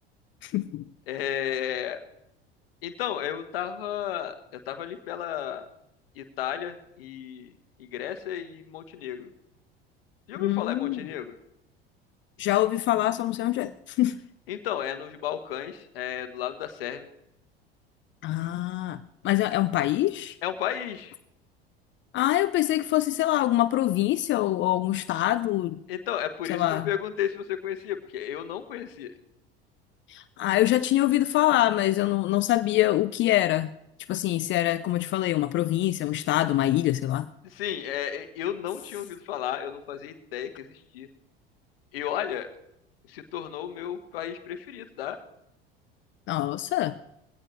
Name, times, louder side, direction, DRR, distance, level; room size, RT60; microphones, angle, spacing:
voice 1, 0.4-0.8 10.4-11.0 12.4-14.2 18.2-19.0 19.2-20.4 22.1-25.8 26.5-26.9 30.1-33.7 34.1-37.3 46.3-47.0, left 15 dB, 40° left, 14 dB, 0.6 m, -25 dB
voice 2, 1.1-2.0 2.8-4.4 4.7-5.6 6.1-7.5 7.8-9.3 10.3-11.3 14.5-17.1 20.4-21.1 25.9-29.1 37.4-41.1 41.9-42.5 43.1-45.2, left 10 dB, 70° left, 9 dB, 1.3 m, -33 dB
20.5 x 16.5 x 3.3 m, 0.81 s
figure-of-eight pair, 70°, 30 cm